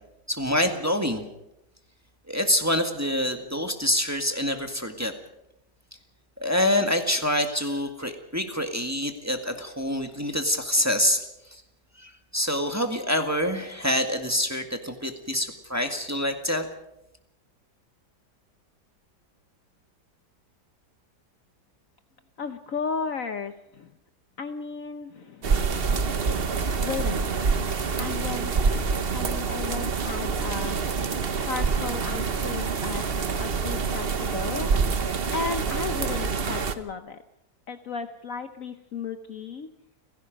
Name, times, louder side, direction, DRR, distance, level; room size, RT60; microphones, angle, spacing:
voice 1, 0.3-1.2 2.3-5.1 6.4-11.2 11.5-11.6 12.0-16.7, left 1 dB, 10° right, 5 dB, 1.8 m, -26 dB
voice 2, 22.4-23.9 24.4-25.5 26.8-27.5 28.0-28.5 29.1-30.8 31.4-33.0 33.4-34.7 35.3-37.2 37.7-39.7, left 5 dB, 55° left, 9 dB, 1.2 m, -34 dB
sound 1, 25.4-36.8, right 5 dB, 40° right, 1.0 m, -26 dB
30.0 x 16.5 x 5.3 m, 0.86 s
omnidirectional pair, 1.8 m